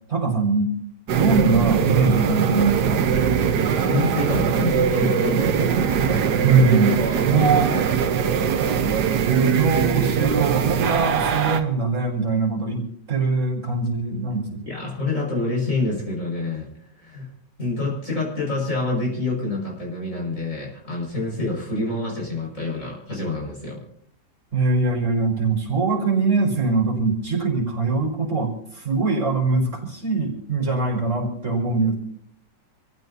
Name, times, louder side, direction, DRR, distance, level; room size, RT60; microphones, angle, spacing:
voice 1, 0.1-0.8 1.1-3.0 6.4-7.0 7.3-7.9 9.3-14.7 24.5-31.9, right 4 dB, 40° right, 0 dB, 5.2 m, -22 dB
sound 1, 1.1-11.6, right 7 dB, 70° right, 1.5 m, -21 dB
voice 2, 3.8-6.5 7.0-7.5 14.6-16.7 17.0-17.3 17.6-23.8, left 2 dB, 45° left, -3 dB, 6.3 m, -27 dB
27.5 x 15.5 x 2.8 m, 0.67 s
omnidirectional pair, 1.9 m